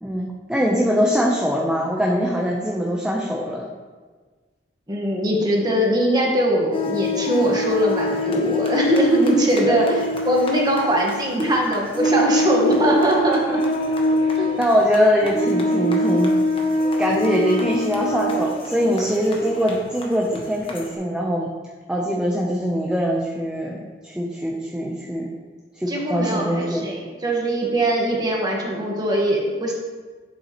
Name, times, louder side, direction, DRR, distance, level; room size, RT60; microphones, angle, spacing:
voice 1, 0.0-3.7 14.4-16.3 17.0-21.5 21.9-25.3 25.8-26.9, equal, 5° right, -3 dB, 0.6 m, -22 dB
voice 2, 4.9-13.6 25.9-29.7, right 1 dB, 20° right, -2 dB, 1.3 m, -21 dB
sound 1, 6.7-20.9, left 1 dB, 30° left, 1.0 m, -24 dB
8.4 x 7.0 x 3.0 m, 1.4 s
head